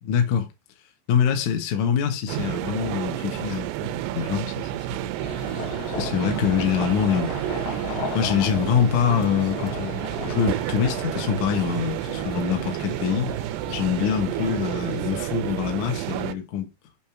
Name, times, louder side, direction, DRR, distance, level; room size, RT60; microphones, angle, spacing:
voice 1, 0.0-0.5 1.1-4.9 6.0-7.3 7.6-7.7 8.1-13.3 13.7-16.7, left 8 dB, 65° left, 2.1 m, -25 dB
sound 1, 2.3-16.3, right 14 dB, 80° right, 2.6 m, -30 dB
sound 2, 5.2-15.4, left 5 dB, 90° left, 4.0 m, -37 dB
8.7 x 3.3 x 5.7 m
omnidirectional pair, 5.0 m